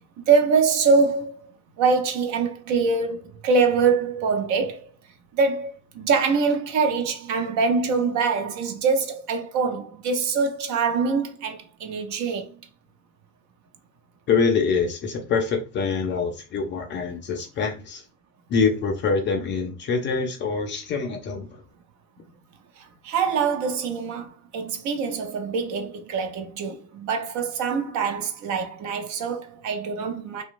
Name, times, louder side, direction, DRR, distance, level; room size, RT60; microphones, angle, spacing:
voice 1, 0.2-1.4 1.8-4.9 5.3-12.6 22.8-30.4, right 5 dB, 40° right, 0.6 m, -24 dB
voice 2, 14.3-18.0 18.5-21.6, left 5 dB, 30° left, 0.4 m, -25 dB
2.8 x 2.2 x 2.4 m
hypercardioid pair, 80°, 43 cm